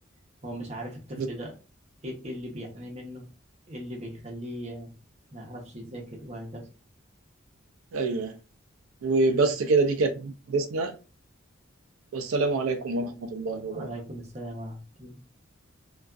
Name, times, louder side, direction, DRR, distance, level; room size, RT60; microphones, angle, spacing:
voice 1, 0.4-1.5 2.0-3.3 3.7-4.9 5.3-6.7 9.3-9.5 13.6-15.2, equal, 35° right, 0.7 m, -39 dB
voice 2, 7.9-8.3 9.0-10.9 12.1-13.9, right 3 dB, 90° right, 0.4 m, -26 dB
2.4 x 2.3 x 2.3 m
head